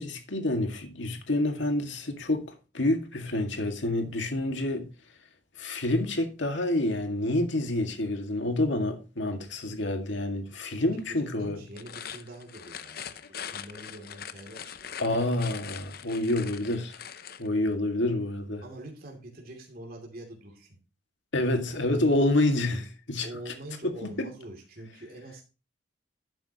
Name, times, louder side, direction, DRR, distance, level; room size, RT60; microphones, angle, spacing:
voice 1, 0.0-2.4 2.7-4.9 5.6-11.6 15.0-17.0 17.4-18.6 21.3-23.5 23.8-24.3, left 1 dB, 70° left, 2.0 m, -28 dB
voice 2, 11.1-14.9 17.6-17.8 18.6-20.8 21.7-21.9 23.2-25.4, right 1 dB, 50° right, 2.7 m, -45 dB
sound 1, 11.7-17.5, left 8 dB, 50° left, 0.6 m, -42 dB
11.5 x 8.9 x 2.9 m
head